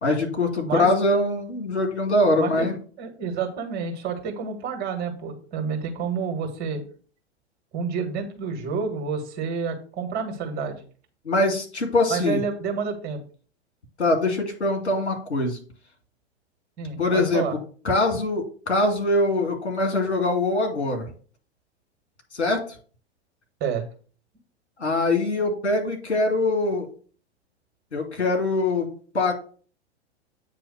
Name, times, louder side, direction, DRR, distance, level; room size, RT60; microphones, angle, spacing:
voice 1, 0.0-2.7 11.3-12.4 14.0-15.6 17.0-17.4 17.8-21.1 22.3-22.6 24.8-26.9 27.9-29.3, left 2 dB, 75° left, 2 dB, 2.2 m, -23 dB
voice 2, 2.4-6.8 7.7-10.8 12.1-13.2 16.8-17.5 23.6-23.8, right 6 dB, 30° right, 3 dB, 1.6 m, -29 dB
8.5 x 3.0 x 6.4 m, 0.41 s
figure-of-eight pair, 100°, 34 cm